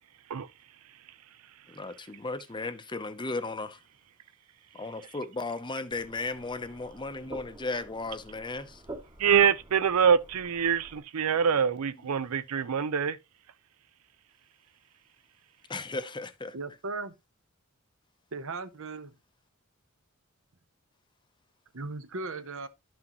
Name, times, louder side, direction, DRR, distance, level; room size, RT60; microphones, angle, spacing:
voice 1, 1.7-3.8 4.7-8.8 15.7-16.5, left 3 dB, 20° left, 0.7 m, -35 dB
sound 1, 5.9-11.0, right 1 dB, 20° right, 1.1 m, -49 dB
voice 2, 9.2-13.2, right 7 dB, 85° right, 0.5 m, -25 dB
voice 3, 16.5-17.1 18.3-19.1 21.7-22.7, right 3 dB, 65° right, 0.9 m, -37 dB
11.0 x 6.1 x 3.0 m
head